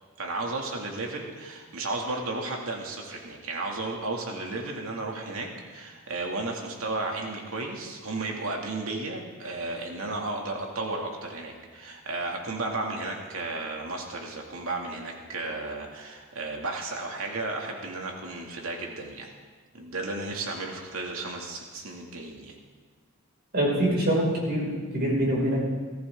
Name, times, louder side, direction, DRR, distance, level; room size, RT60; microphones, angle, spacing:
voice 1, 0.2-19.3 19.7-22.5, right 2 dB, 85° right, 0 dB, 2.4 m, -34 dB
voice 2, 23.5-25.6, right 1 dB, 50° right, -4 dB, 5.5 m, -25 dB
21.5 x 14.5 x 3.7 m, 1.4 s
head